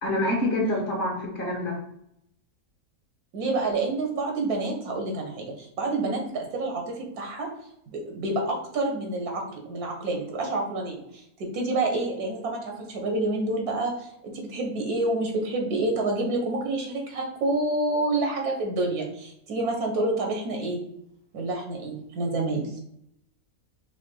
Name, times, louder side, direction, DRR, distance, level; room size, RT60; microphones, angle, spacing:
voice 1, 0.0-1.8, left 1 dB, 40° left, -3 dB, 1.3 m, -26 dB
voice 2, 3.3-7.5 7.9-11.2 11.5-20.8 21.3-22.7, right 2 dB, 85° right, 1 dB, 1.5 m, -28 dB
4.9 x 2.1 x 4.4 m, 0.76 s
omnidirectional pair, 1.6 m